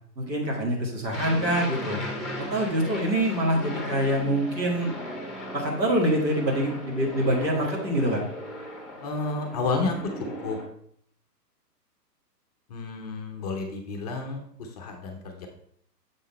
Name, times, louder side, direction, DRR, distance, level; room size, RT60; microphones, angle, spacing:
voice 1, 0.2-2.0 2.4-5.0 5.5-8.2, right 1 dB, 85° right, -1 dB, 2.1 m, -25 dB
Aircraft, 1.1-10.6, left 1 dB, ahead, 1.0 m, -37 dB
voice 2, 9.0-10.6 12.7-15.5, left 3 dB, 25° left, 3 dB, 0.6 m, -31 dB
6.7 x 3.7 x 4.1 m, 0.65 s
figure-of-eight pair, 120°, 50 cm